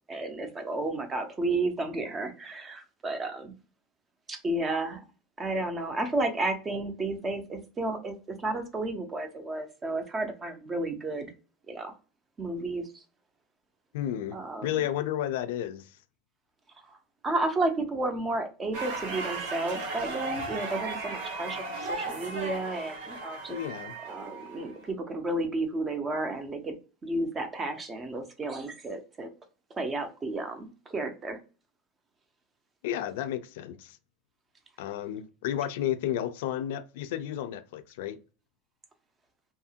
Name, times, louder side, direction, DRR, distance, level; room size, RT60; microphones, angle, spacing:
voice 1, 0.1-3.5 4.3-5.0 5.4-11.3 11.7-11.9 12.4-12.9 14.3-14.7 17.2-23.6 24.1-26.8 27.0-29.3 29.8-31.4, right 2 dB, 15° right, 0.4 m, -32 dB
voice 2, 13.9-16.0 23.5-23.9 32.8-34.0 34.8-38.2, left 11 dB, 70° left, 0.3 m, -32 dB
sound 1, 18.7-24.9, right 2 dB, 90° right, 1.0 m, -36 dB
2.7 x 2.3 x 2.7 m
supercardioid pair, 170°, 0 cm